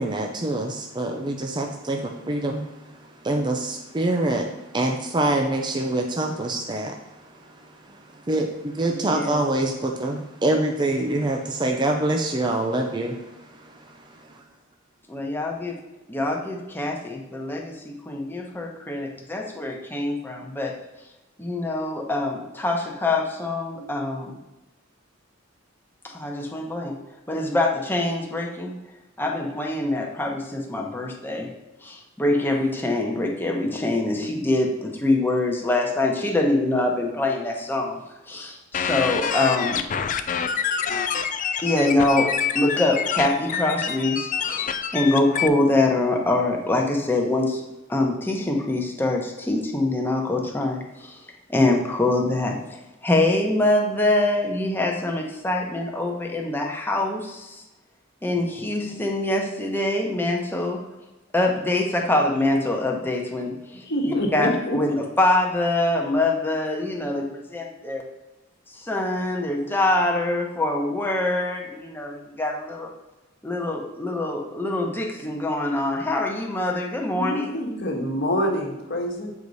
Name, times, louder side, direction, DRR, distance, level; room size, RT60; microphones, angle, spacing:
voice 1, 0.0-14.4, right 2 dB, 20° right, 3 dB, 0.6 m, -26 dB
voice 2, 8.9-9.4 15.1-15.8 16.1-20.7 21.4-24.4 26.0-27.0 27.3-28.7 29.2-31.5 31.8-38.0 38.3-39.8 41.6-47.6 47.9-51.2 51.5-57.6 58.2-60.8 61.3-68.0 68.7-72.9 73.4-77.5, left 2 dB, 10° left, 0 dB, 1.0 m, -24 dB
sound 1, 38.7-45.5, left 7 dB, 40° left, 0.4 m, -26 dB
voice 3, 63.8-64.8 77.2-79.3, equal, 55° left, 1 dB, 1.4 m, -26 dB
8.2 x 4.8 x 4.1 m, 1.0 s
head